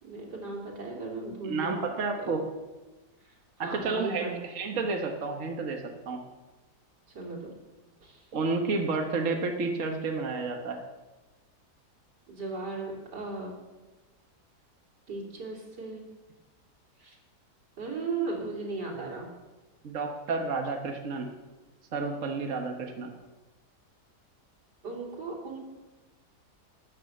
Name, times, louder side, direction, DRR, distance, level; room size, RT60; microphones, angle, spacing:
voice 1, 0.0-2.4 3.2-4.4 7.1-7.5 8.0-8.2 12.3-13.5 15.1-16.1 17.0-17.2 17.8-19.3 24.8-25.7, right 3 dB, 85° right, -1 dB, 3.7 m, -37 dB
voice 2, 1.4-2.4 3.6-6.2 8.3-10.8 19.8-21.3 21.9-23.1, right 4 dB, 55° right, 3 dB, 1.5 m, -31 dB
12.5 x 9.7 x 7.8 m, 1.2 s
omnidirectional pair, 1.8 m